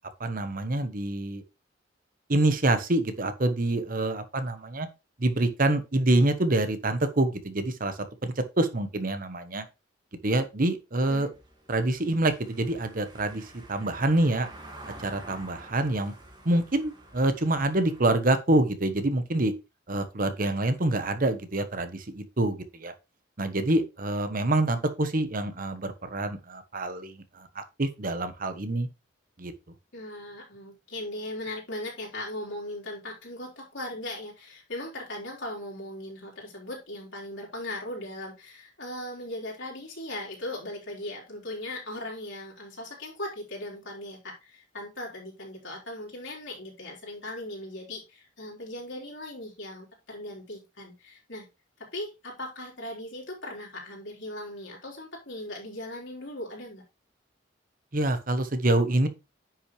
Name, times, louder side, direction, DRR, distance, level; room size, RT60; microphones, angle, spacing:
voice 1, 0.2-1.4 2.3-4.9 5.2-9.6 10.2-11.3 11.7-14.5 15.0-16.1 16.4-19.5 19.9-22.9 23.4-28.9 29.4-29.5 57.9-59.1, right 2 dB, 45° right, 1.1 m, -26 dB
Car passing by / Engine, 11.3-18.1, right 1 dB, 25° right, 1.9 m, -48 dB
voice 2, 29.9-51.5 51.8-56.8, left 1 dB, 70° left, 4.0 m, -38 dB
10.0 x 6.1 x 3.2 m
head